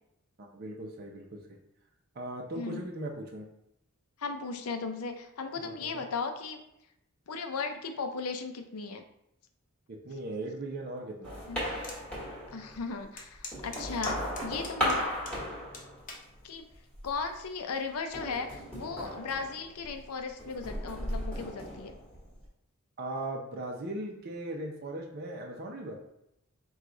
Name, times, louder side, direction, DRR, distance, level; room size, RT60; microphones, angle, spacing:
voice 1, 0.4-1.4 2.1-3.5 5.6-6.0 9.9-11.4 23.0-25.9, right 1 dB, 45° right, 0 dB, 0.6 m, -38 dB
voice 2, 4.2-6.6 7.3-9.0 11.5-11.6 12.5-15.0 16.4-16.7 17.0-21.9, left 4 dB, 85° left, 6 dB, 0.5 m, -36 dB
sound 1, 11.2-12.9 13.3-16.3 16.7-17.3 18.1-20.0 20.4-22.4, equal, 5° left, 1.3 m, -36 dB
sound 2, 11.8-12.0 12.5-12.6 13.2-15.4 15.7-16.3 17.0-17.3, left 3 dB, 40° left, 0.7 m, -42 dB
4.7 x 2.3 x 3.8 m, 0.79 s
head